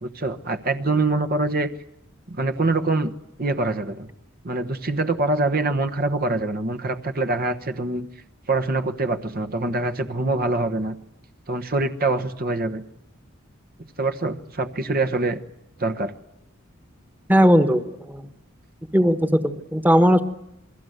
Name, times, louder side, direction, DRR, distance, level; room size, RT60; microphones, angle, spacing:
voice 1, 0.0-1.7 2.3-3.1 3.4-4.1 4.4-8.1 8.5-11.0 11.5-12.8 14.0-15.4 15.8-16.1, right 2 dB, 50° right, 7 dB, 1.2 m, -24 dB
voice 2, 17.3-18.2 18.9-20.2, equal, 10° right, 10 dB, 1.4 m, -18 dB
28.5 x 21.5 x 8.0 m, 0.83 s
head